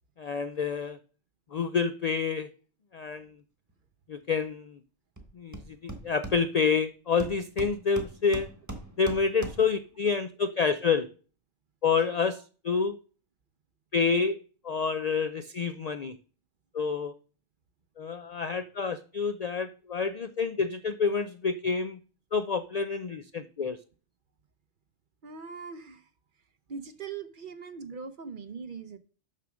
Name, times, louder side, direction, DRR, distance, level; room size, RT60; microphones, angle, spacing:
voice 1, 0.2-1.0 1.5-2.5 2.9-3.4 4.1-4.8 5.4-8.5 9.0-11.1 11.8-13.0 13.9-14.4 14.6-16.2 16.7-17.1 18.0-22.0 22.3-23.8, left 5 dB, 65° left, 11 dB, 0.4 m, -28 dB
Hammer, 5.2-5.3 5.5-6.8 7.2-9.8, right 2 dB, 15° right, 1.1 m, -41 dB
voice 2, 25.2-26.1 26.7-29.0, right 5 dB, 50° right, 11 dB, 0.8 m, -41 dB
6.9 x 6.1 x 6.1 m, 0.38 s
omnidirectional pair, 1.2 m